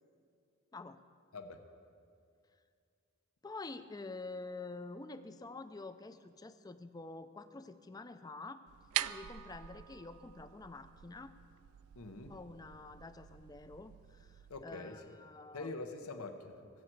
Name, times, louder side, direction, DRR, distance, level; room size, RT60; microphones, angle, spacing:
voice 1, 3.4-8.6 9.0-11.4 12.3-15.7, left 3 dB, 15° left, 11 dB, 0.4 m, -48 dB
sound 1, 8.7-14.6, right 13 dB, 80° right, 0.3 m, -44 dB
voice 2, 12.0-12.3 14.5-14.9 15.5-16.6, left 3 dB, 85° left, 7 dB, 0.9 m, -44 dB
22.0 x 7.7 x 4.6 m, 2.3 s
head